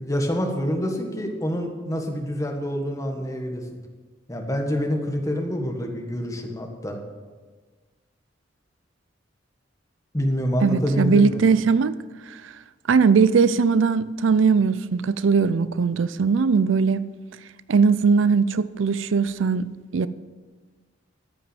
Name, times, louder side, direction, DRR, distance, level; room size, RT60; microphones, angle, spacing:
voice 1, 0.0-3.6 4.3-7.0 10.1-11.4, equal, 15° left, 1.6 m, -26 dB
voice 2, 10.6-12.0 12.3-12.4 12.9-17.0 17.7-19.7 19.9-20.1, right 5 dB, 90° right, 0.5 m, -19 dB
13.5 x 5.9 x 9.1 m
head